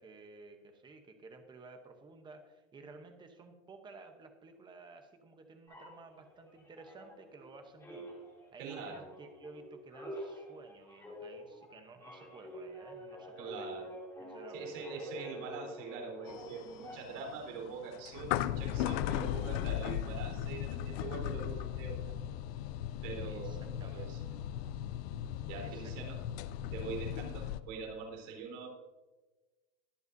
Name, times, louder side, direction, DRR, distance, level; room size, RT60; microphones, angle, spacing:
voice 1, 0.0-8.1 8.5-13.7 14.2-14.8 23.2-24.2 25.6-26.2, right 3 dB, 10° right, 5 dB, 0.8 m, -53 dB
sound 1, 5.7-7.5 7.8-17.3, equal, 5° left, 2.8 m, -47 dB
voice 2, 8.6-9.0 13.4-13.8 14.5-22.0 23.0-24.4 25.5-26.2 26.7-28.7, right 5 dB, 70° right, -1 dB, 3.9 m, -44 dB
sound 2, 16.3-27.6, left 11 dB, 50° left, 0.5 m, -37 dB
22.0 x 7.9 x 2.7 m, 1.2 s
supercardioid pair, 170°, 40 cm